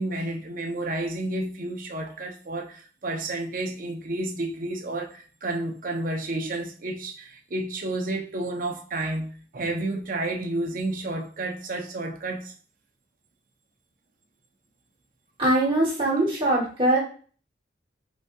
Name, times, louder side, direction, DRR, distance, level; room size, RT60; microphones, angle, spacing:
voice 1, 0.0-12.5, right 2 dB, 45° right, 0.7 m, -31 dB
voice 2, 15.4-17.0, right 1 dB, 30° right, 1.2 m, -22 dB
4.0 x 3.5 x 2.3 m
head